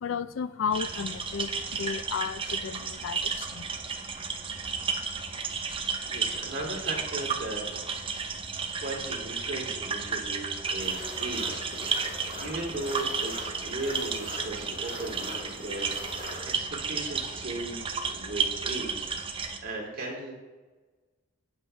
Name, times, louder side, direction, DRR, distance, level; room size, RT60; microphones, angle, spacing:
voice 1, 0.0-3.7, left 6 dB, 65° left, 0.4 m, -33 dB
sound 1, 0.7-19.6, right 5 dB, 25° right, 0.7 m, -33 dB
voice 2, 6.1-7.6 8.1-8.2 8.8-19.1 19.4-20.3, right 2 dB, 45° right, 2.7 m, -37 dB
sound 2, 10.8-16.6, left 2 dB, 50° left, 1.6 m, -43 dB
13.0 x 8.8 x 3.3 m
head